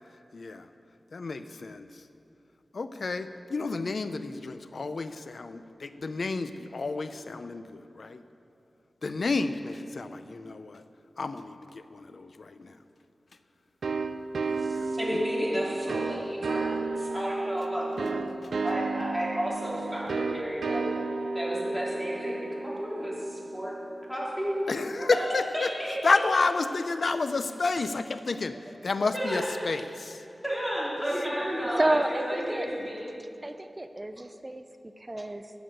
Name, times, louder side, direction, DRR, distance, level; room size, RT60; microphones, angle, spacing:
voice 1, 0.3-0.7 1.1-1.9 2.7-8.2 9.0-10.8 11.2-12.7 14.5-14.9 24.7-25.7 26.0-28.6 28.8-30.2, left 3 dB, 70° left, 10 dB, 0.5 m, -30 dB
sound 1, 13.8-24.3, right 3 dB, 90° right, 0.5 m, -32 dB
voice 2, 14.6-18.2 18.6-20.9 21.3-23.7 24.0-25.1 25.5-26.0 29.1-29.8 30.4-33.1, equal, 5° left, -5 dB, 3.1 m, -32 dB
voice 3, 31.5-32.7 33.4-35.5, right 1 dB, 25° right, 8 dB, 0.5 m, -30 dB
11.5 x 7.0 x 7.8 m, 2.7 s
wide cardioid pair, 75°, 0 cm